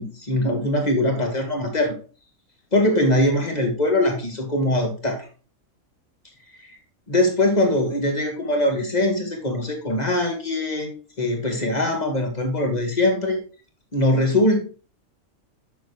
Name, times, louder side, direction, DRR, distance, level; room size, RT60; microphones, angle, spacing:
voice 1, 0.0-1.9 2.7-5.2 7.1-10.9 11.2-13.4 13.9-14.6, left 1 dB, 30° left, 2 dB, 1.7 m, -22 dB
6.8 x 6.2 x 3.2 m, 0.37 s
omnidirectional pair, 1.4 m